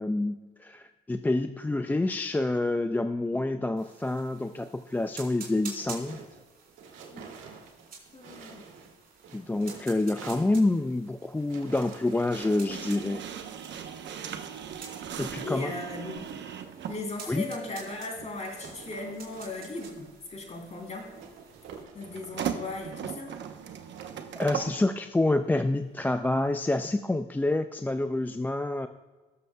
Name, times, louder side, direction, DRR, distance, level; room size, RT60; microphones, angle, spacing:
voice 1, 0.0-6.2 9.3-13.2 15.2-15.7 17.3-17.4 24.4-28.9, left 2 dB, 10° left, 9 dB, 0.3 m, -27 dB
sound 1, 3.8-21.8, right 5 dB, 50° right, 3.3 m, -50 dB
sound 2, 5.8-24.4, right 5 dB, 85° right, 1.6 m, -50 dB
voice 2, 8.1-8.7 15.4-16.2 16.9-21.0 21.9-23.3, left 3 dB, 35° left, 0 dB, 3.2 m, -37 dB
sound 3, 12.3-17.0 18.1-18.3 22.1-24.8, right 8 dB, 65° right, 0.9 m, -37 dB
19.0 x 6.9 x 2.2 m, 1.3 s
cardioid pair, 90°, 20 cm